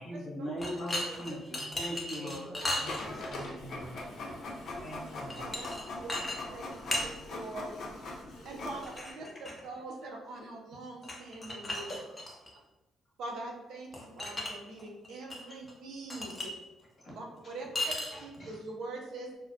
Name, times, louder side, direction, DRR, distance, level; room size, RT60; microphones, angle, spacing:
voice 1, 0.0-2.6 4.5-4.6 8.7-8.8 11.5-11.6 17.0-17.1 18.1-18.6, equal, 45° left, -4 dB, 0.9 m, -40 dB
sound 1, 0.6-3.5 5.3-5.8 6.1-6.4 6.6-7.1 8.8-9.6 11.0-12.5 13.9-14.5 14.8-15.4 15.7-15.8 16.1-16.5 17.7-18.3, left 1 dB, 20° left, 0.6 m, -36 dB
voice 2, 1.6-4.1 4.8-5.6, right 1 dB, 25° right, -3 dB, 0.6 m, -48 dB
Printer, 2.9-9.1, left 2 dB, 65° left, 0.5 m, -41 dB
voice 3, 5.4-6.1 6.5-6.6 6.9-7.7 8.0-8.2 8.4-11.9 13.2-16.5 17.1-17.9 18.2-19.4, right 2 dB, 75° right, 0 dB, 0.5 m, -43 dB
2.5 x 2.1 x 2.5 m, 1.0 s
cardioid pair, 90°, 0 cm